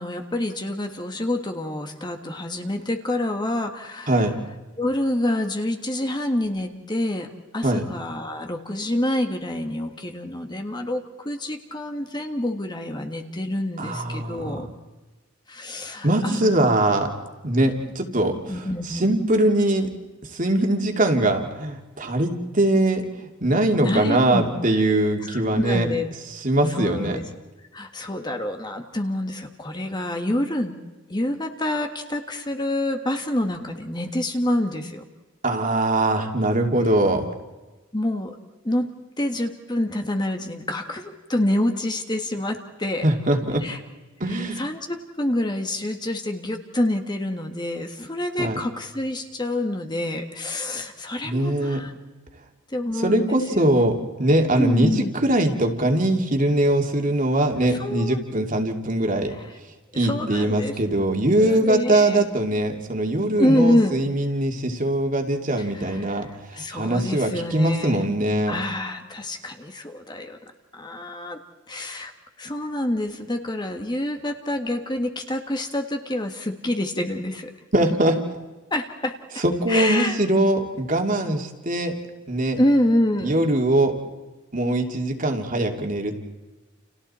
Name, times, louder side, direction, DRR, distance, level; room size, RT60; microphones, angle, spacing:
voice 1, 0.0-4.3 4.8-14.7 15.5-16.6 18.5-19.2 23.8-24.8 25.2-26.1 26.7-27.2 27.7-30.8 31.1-35.0 37.9-38.4 38.6-38.9 39.2-43.1 43.6-43.8 44.3-51.9 52.7-53.6 54.6-55.1 57.7-58.2 59.3-59.5 59.9-60.8 61.4-62.2 63.4-64.0 65.6-68.0 68.5-70.4 70.7-71.4 71.7-72.1 72.4-77.5 78.7-79.2 79.7-80.2 82.6-83.4, left 1 dB, 20° left, 5 dB, 1.6 m, -27 dB
voice 2, 4.1-4.4 7.6-7.8 13.8-14.7 16.0-17.1 17.4-18.4 18.8-19.9 20.3-25.9 26.4-27.2 35.4-37.3 43.0-43.6 44.2-44.6 48.4-48.6 51.2-51.8 53.0-59.3 60.0-66.3 66.5-68.5 77.7-78.2 79.4-81.9 82.3-82.6 83.2-83.9 84.5-86.1, right 1 dB, 40° right, 3 dB, 2.7 m, -22 dB
30.0 x 29.5 x 4.4 m, 1.2 s
head